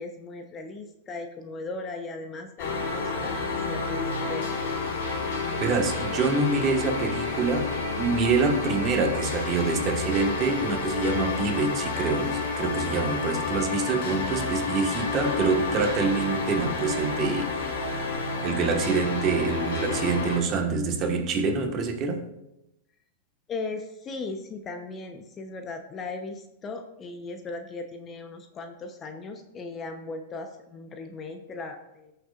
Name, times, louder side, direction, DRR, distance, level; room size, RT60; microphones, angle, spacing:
voice 1, 0.0-4.5 23.5-32.1, left 3 dB, 25° left, 0.9 m, -38 dB
sound 1, 2.6-20.4, left 4 dB, 70° left, 3.6 m, -30 dB
voice 2, 5.6-17.5 17.9-18.1 18.4-22.3, right 4 dB, 30° right, 1.5 m, -26 dB
19.5 x 6.7 x 2.5 m
supercardioid pair, 145°, 0 cm